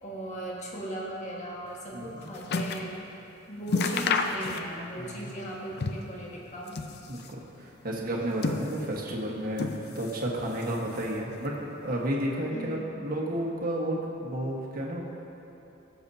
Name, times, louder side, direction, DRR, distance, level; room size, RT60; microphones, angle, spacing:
voice 1, 0.0-3.0 3.5-6.8 12.5-12.9, right 1 dB, 35° left, -3 dB, 1.5 m, -38 dB
sound 1, 1.8-2.9 3.3-3.4 3.7-5.0 5.2-6.2 6.6-7.4 8.0-9.1 9.5-10.2 10.5-11.3 12.0-12.1, left 4 dB, 50° left, 0.5 m, -31 dB
voice 2, 1.9-2.3 5.0-5.3 7.1-15.0, right 1 dB, 45° right, -3 dB, 1.3 m, -32 dB
18.5 x 6.9 x 2.7 m, 3.0 s
head